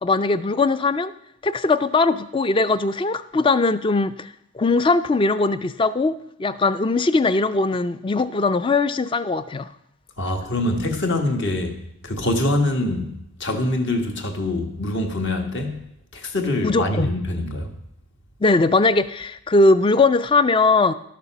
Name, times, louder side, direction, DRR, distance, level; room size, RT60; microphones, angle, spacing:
voice 1, 0.0-1.1 1.4-9.7 16.6-17.1 18.4-20.9, left 3 dB, 20° left, 14 dB, 0.3 m, -20 dB
voice 2, 10.2-11.8 12.0-15.8 16.1-17.7, left 1 dB, 50° left, 4 dB, 1.4 m, -24 dB
12.0 x 6.8 x 5.9 m, 0.79 s
head